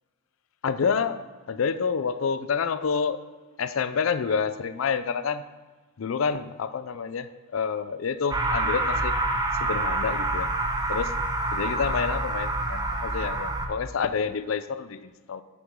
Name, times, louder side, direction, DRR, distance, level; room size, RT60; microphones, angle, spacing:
voice 1, 0.6-1.2 1.5-3.2 3.6-5.4 6.0-9.1 9.6-10.5 10.9-11.2 11.5-15.4, left 6 dB, 75° left, 13 dB, 0.4 m, -28 dB
sound 1, 8.3-13.7, right 2 dB, 20° right, 0.7 m, -27 dB
7.1 x 7.0 x 3.7 m, 1.3 s
head